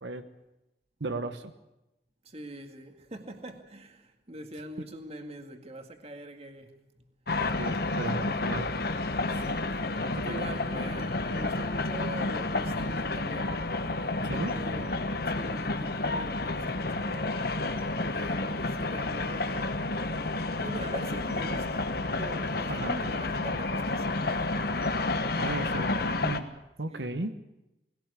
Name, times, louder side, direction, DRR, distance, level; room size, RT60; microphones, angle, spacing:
voice 1, 1.0-1.5 7.6-8.7 9.3-9.5 10.0-10.5 14.2-14.5 22.7-22.9 25.3-25.9 26.2-26.5 26.8-27.4, right 2 dB, 85° right, 1.2 m, -35 dB
voice 2, 2.2-7.1 9.3-9.8 10.2-13.6 14.3-17.4 18.1-19.8 20.6-24.6 25.3-25.5 25.9-26.1 26.9-27.1, right 1 dB, 35° right, 2.2 m, -43 dB
sound 1, 7.3-26.4, left 2 dB, 60° left, 1.3 m, -30 dB
20.5 x 17.0 x 8.3 m
head